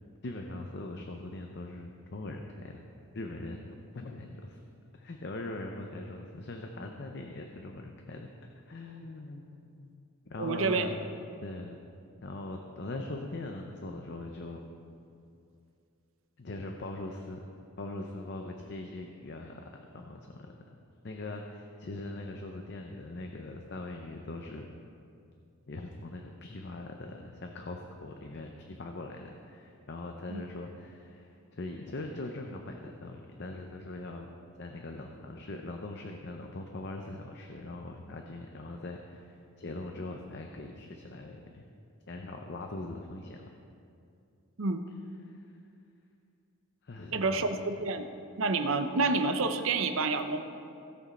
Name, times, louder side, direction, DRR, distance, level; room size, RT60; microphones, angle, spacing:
voice 1, 0.2-2.8 3.1-4.6 4.9-8.3 8.5-9.9 10.2-11.0 11.4-11.8 12.2-14.6 16.4-17.4 17.8-19.7 19.9-20.5 21.0-24.7 25.7-34.3 34.6-41.7 42.1-43.5 45.2-45.4 46.8-47.5, left 2 dB, 50° left, 3 dB, 0.6 m, -41 dB
voice 2, 10.4-10.9 30.3-30.4 44.6-44.8 47.1-48.1 48.4-50.4, right 3 dB, 60° right, 8 dB, 0.6 m, -28 dB
17.0 x 6.1 x 4.3 m, 2.5 s
head